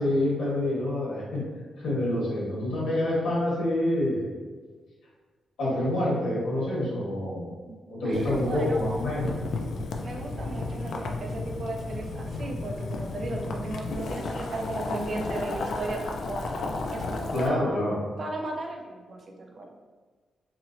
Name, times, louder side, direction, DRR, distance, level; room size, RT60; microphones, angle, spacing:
voice 1, 0.0-1.4 1.8-4.3 5.6-7.5 7.9-9.3 17.3-17.9, left 1 dB, 85° left, -6 dB, 1.4 m, -27 dB
voice 2, 7.7-8.8 10.0-16.5 16.9-17.8 18.2-19.7, right 2 dB, 40° right, 2 dB, 0.4 m, -36 dB
Boiling, 8.1-17.5, left 3 dB, 65° left, 0.3 m, -33 dB
3.0 x 2.9 x 2.5 m, 1.4 s
wide cardioid pair, 160°, 0 cm